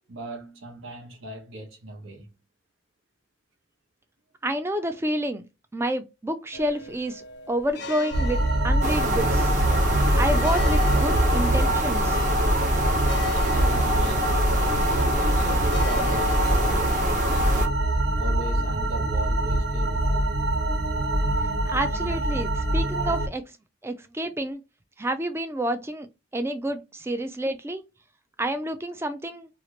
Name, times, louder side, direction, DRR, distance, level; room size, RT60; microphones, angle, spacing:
voice 1, 0.1-2.3 13.4-20.3, right 2 dB, 75° right, 1.0 m, -38 dB
voice 2, 4.4-5.4 5.7-9.5 10.1-12.2 21.4-23.5 23.8-24.6 25.0-27.8 28.4-29.5, right 1 dB, 10° right, 0.4 m, -29 dB
sound 1, 6.5-16.8, right 1 dB, 55° left, 0.5 m, -40 dB
sound 2, 8.1-23.3, right 1 dB, 55° right, 1.2 m, -24 dB
sound 3, 8.8-17.7, equal, 35° right, 0.9 m, -25 dB
2.8 x 2.4 x 3.0 m
head